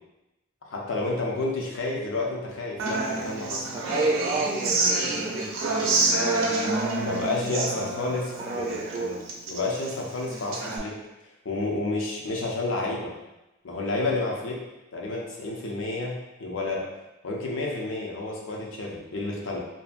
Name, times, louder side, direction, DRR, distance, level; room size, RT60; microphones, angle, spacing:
voice 1, 0.7-3.7 7.0-11.0 11.4-13.1 13.6-14.6 14.9-16.9 17.2-19.6, left 2 dB, 70° left, -2 dB, 0.6 m, -30 dB
Human voice / Acoustic guitar, 2.8-10.8, right 2 dB, 85° right, 0.5 m, -28 dB
voice 2, 3.7-7.8 8.4-9.2, right 2 dB, 30° right, 0 dB, 0.4 m, -31 dB
2.6 x 2.5 x 2.3 m, 0.97 s
head